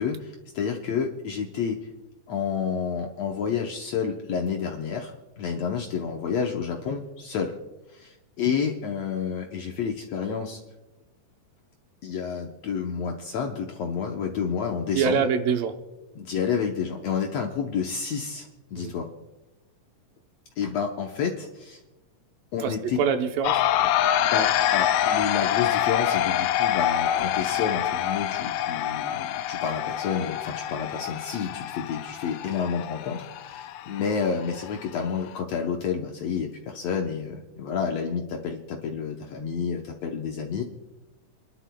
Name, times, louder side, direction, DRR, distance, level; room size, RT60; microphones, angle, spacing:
voice 1, 0.0-1.8 2.3-7.5 7.9-10.6 12.0-15.3 16.1-19.1 20.6-21.8 22.5-23.0 24.2-40.6, left 6 dB, 70° left, 2 dB, 1.6 m, -30 dB
voice 2, 14.9-15.8 18.8-18.9 22.6-23.6, right 6 dB, 80° right, 7 dB, 2.5 m, -25 dB
sound 1, 23.4-35.4, left 11 dB, 90° left, 1.6 m, -26 dB
29.5 x 11.5 x 2.2 m, 1.0 s
omnidirectional pair, 3.9 m